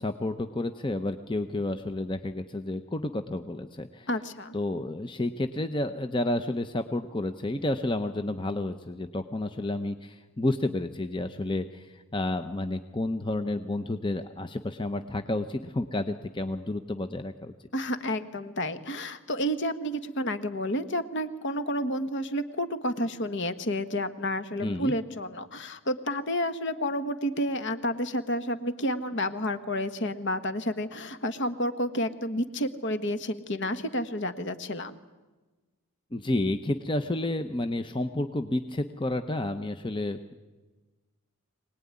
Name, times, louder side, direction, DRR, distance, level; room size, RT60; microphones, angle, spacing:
voice 1, 0.0-4.1 4.5-17.5 24.6-24.9 36.1-40.3, left 1 dB, 20° left, 8 dB, 0.8 m, -30 dB
voice 2, 4.1-4.5 17.7-35.0, equal, 55° left, 10 dB, 1.4 m, -30 dB
24.0 x 19.0 x 9.7 m, 1.2 s
head